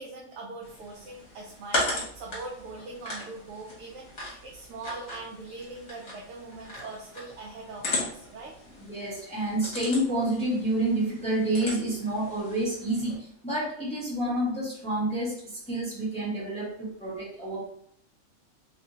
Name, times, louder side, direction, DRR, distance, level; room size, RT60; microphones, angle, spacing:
voice 1, 0.0-8.5, right 3 dB, 80° right, -2 dB, 1.0 m, -41 dB
sound 1, 0.6-13.2, left 2 dB, 60° left, 1.5 m, -37 dB
voice 2, 8.7-17.7, right 1 dB, 5° left, -7 dB, 0.9 m, -29 dB
3.2 x 3.1 x 2.7 m, 0.63 s
omnidirectional pair, 1.4 m